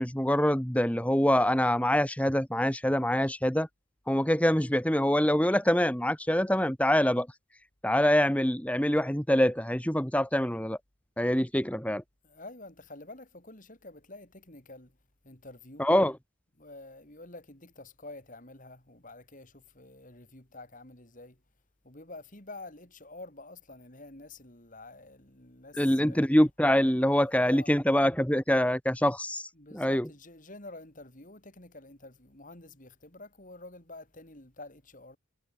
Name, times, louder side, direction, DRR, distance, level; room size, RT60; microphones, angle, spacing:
voice 1, 0.0-3.7 4.1-7.3 7.8-10.8 11.2-12.0 15.8-16.2 25.8-30.1, equal, 5° left, 1.9 m, -25 dB
voice 2, 12.2-14.9 15.2-15.9 16.6-21.4 21.8-26.3 27.2-27.7 29.6-35.2, left 2 dB, 40° left, 3.4 m, -48 dB
head